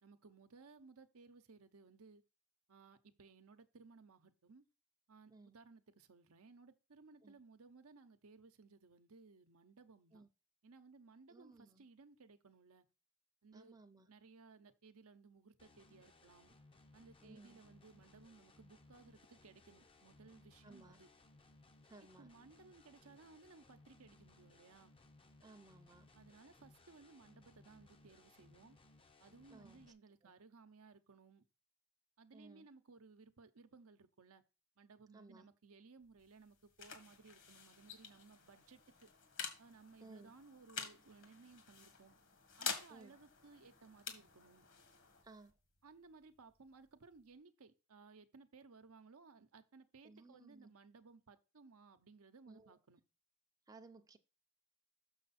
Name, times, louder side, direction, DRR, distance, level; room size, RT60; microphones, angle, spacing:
voice 1, 0.0-2.2 2.7-4.7 5.1-10.2 10.6-12.9 13.4-13.8 14.1-16.5 16.9-21.1 22.0-25.0 26.1-28.8 29.2-31.4 32.2-34.4 34.8-39.1 39.6-42.2 42.6-44.7 45.8-53.0, right 4 dB, 70° right, 0.8 m, -61 dB
voice 2, 11.3-11.8 13.5-14.1 17.2-17.6 20.6-21.0 21.8-22.3 25.4-26.1 29.5-29.8 30.2-30.3 32.3-32.6 35.1-35.5 40.0-40.3 42.9-43.1 45.2-45.5 50.0-50.7 52.5-52.8 53.7-54.2, right 3 dB, 15° right, 0.6 m, -59 dB
sound 1, 15.6-29.9, left 2 dB, 25° left, 0.8 m, -65 dB
sound 2, 36.0-47.4, left 6 dB, 55° left, 1.8 m, -49 dB
6.6 x 6.3 x 4.2 m
head